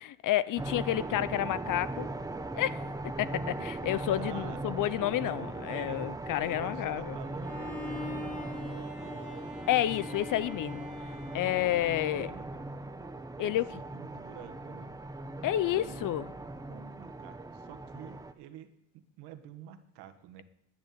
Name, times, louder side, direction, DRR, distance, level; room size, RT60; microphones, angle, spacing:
voice 1, 0.2-2.1 2.5-2.9 3.2-7.2 9.7-10.9 11.3-12.3 13.4-13.6 15.4-16.3, left 13 dB, 50° left, 0.7 m, -30 dB
sound 1, 0.6-18.3, right 2 dB, 10° right, 0.8 m, -39 dB
voice 2, 4.2-4.8 5.2-6.0 6.5-9.5 11.9-12.6 13.4-15.0 15.6-16.3 16.7-20.4, right 10 dB, 80° right, 1.6 m, -49 dB
Bowed string instrument, 7.4-12.5, left 3 dB, 20° left, 2.4 m, -43 dB
10.5 x 9.0 x 9.3 m
cardioid pair, 135°, 40 cm